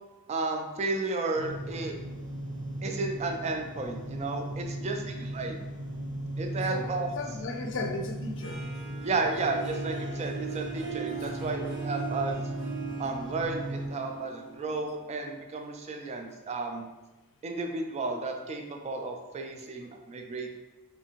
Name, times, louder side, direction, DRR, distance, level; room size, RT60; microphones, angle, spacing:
voice 1, 0.3-1.9 2.8-5.6 6.4-7.2 9.0-12.4 13.0-16.9 17.4-20.6, right 3 dB, 30° right, 3 dB, 0.3 m, -33 dB
sound 1, 1.3-13.9, right 1 dB, 90° right, 0.8 m, -37 dB
voice 2, 6.5-8.6 11.2-11.5, left 3 dB, 55° left, 4 dB, 0.4 m, -37 dB
Harp, 8.4-15.3, right 6 dB, 55° right, 1.1 m, -40 dB
3.3 x 2.7 x 2.9 m, 1.1 s
head